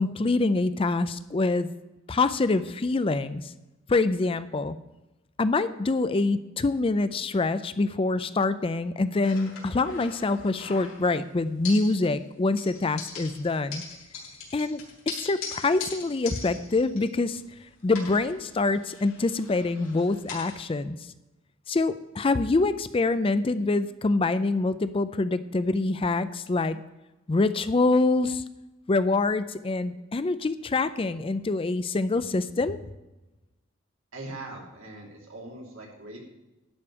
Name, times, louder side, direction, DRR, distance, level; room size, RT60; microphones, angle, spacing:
voice 1, 0.0-1.7 2.1-3.5 3.9-4.8 5.4-13.8 14.5-14.8 15.1-17.4 17.8-21.0 21.7-26.8 27.3-28.4 28.9-32.8, left 3 dB, 25° left, 13 dB, 0.4 m, -25 dB
sound 1, 9.2-11.2 11.6-12.3 12.6-17.6 17.9-20.6, left 5 dB, 80° left, 3.5 m, -41 dB
voice 2, 34.1-36.2, right 2 dB, 80° right, -1 dB, 3.0 m, -41 dB
11.5 x 5.2 x 8.4 m, 1.0 s
head